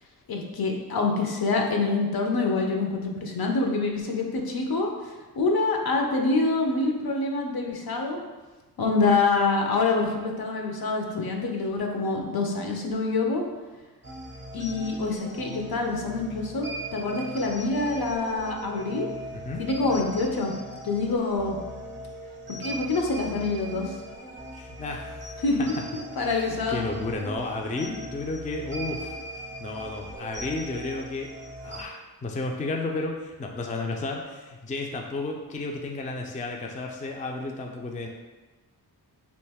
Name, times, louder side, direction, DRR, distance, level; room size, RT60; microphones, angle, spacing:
voice 1, 0.3-4.9 5.3-8.2 8.8-13.4 14.5-16.6 16.9-19.1 19.6-20.5 20.8-21.6 22.6-23.9 25.4-25.7 25.9-26.9 27.3-27.4, left 3 dB, 65° left, 1 dB, 0.6 m, -26 dB
sound 1, 14.0-31.8, right 1 dB, 30° right, 0.6 m, -40 dB
voice 2, 24.5-25.2 26.3-29.2 29.6-31.3 31.6-38.1, left 2 dB, 20° left, 1 dB, 0.4 m, -32 dB
3.1 x 2.6 x 3.4 m, 1.2 s
wide cardioid pair, 75°, 40 cm